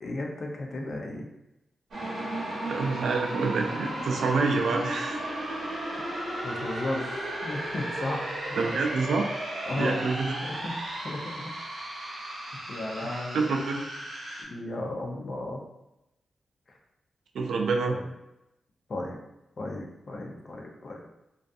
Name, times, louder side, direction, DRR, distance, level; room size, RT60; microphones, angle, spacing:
voice 1, 0.0-1.3 6.4-8.7 9.7-10.0 10.4-10.8 11.0-11.6 12.7-13.7 14.4-15.6 17.9-18.0 18.9-19.2 19.6-21.1, left 2 dB, 45° left, 0 dB, 0.4 m, -35 dB
sound 1, 1.9-14.4, right 1 dB, 65° right, 0.8 m, -34 dB
voice 2, 2.7-5.2 8.6-9.3 9.8-10.3 13.0-13.9 17.3-17.9, right 4 dB, 80° right, 3 dB, 0.3 m, -27 dB
2.5 x 2.3 x 2.3 m, 0.89 s
wide cardioid pair, 155°, 0 cm